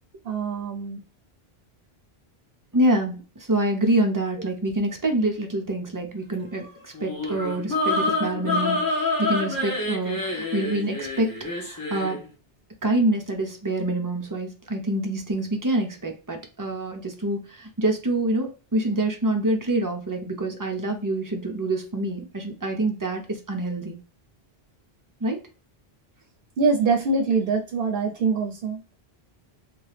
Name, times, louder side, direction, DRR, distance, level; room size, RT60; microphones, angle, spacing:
voice 1, 0.2-1.0 26.6-28.8, right 4 dB, 65° right, 3 dB, 0.7 m, -24 dB
voice 2, 2.7-11.3 11.6-12.2 12.8-24.0 25.2-25.4, right 1 dB, 30° right, 3 dB, 0.4 m, -26 dB
sound 1, 6.9-12.2, left 2 dB, 20° left, 0.9 m, -27 dB
2.8 x 2.3 x 3.2 m, 0.33 s
omnidirectional pair, 1.1 m